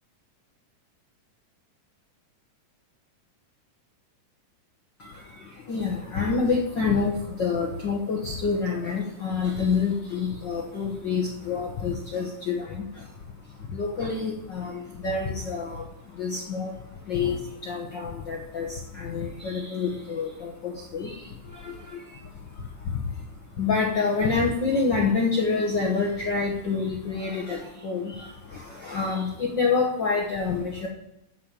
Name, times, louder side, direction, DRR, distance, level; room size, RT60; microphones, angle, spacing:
voice 1, 5.0-13.2 13.7-30.9, left 4 dB, 80° left, 0 dB, 1.0 m, -28 dB
8.3 x 7.6 x 8.8 m, 0.86 s
omnidirectional pair, 3.8 m